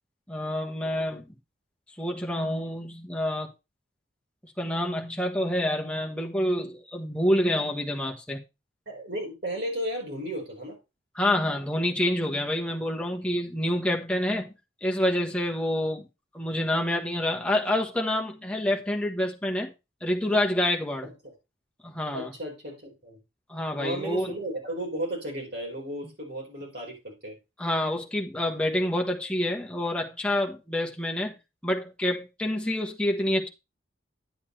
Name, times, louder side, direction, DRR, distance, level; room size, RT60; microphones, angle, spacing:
voice 1, 0.3-1.2 2.0-3.5 4.4-8.4 11.1-14.5 14.8-16.1 16.3-19.7 20.0-21.1 21.8-22.3 23.5-24.3 27.6-31.3 31.6-33.5, left 1 dB, 5° left, 1.2 m, -27 dB
voice 2, 8.9-10.8 21.0-21.3 22.1-23.2 23.8-27.3, right 1 dB, 55° right, 4.6 m, -34 dB
10.5 x 8.3 x 3.2 m
head